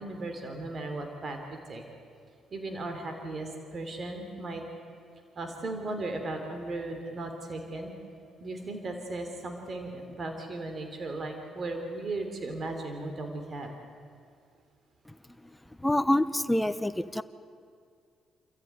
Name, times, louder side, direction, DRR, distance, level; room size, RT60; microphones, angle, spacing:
voice 1, 0.0-1.8 2.5-4.6 5.4-7.9 8.4-13.7, right 2 dB, 45° right, 4 dB, 3.4 m, -36 dB
voice 2, 15.8-17.2, left 1 dB, 5° left, 12 dB, 1.0 m, -26 dB
28.5 x 14.0 x 9.8 m, 2.2 s
cardioid pair, 90°, 0 cm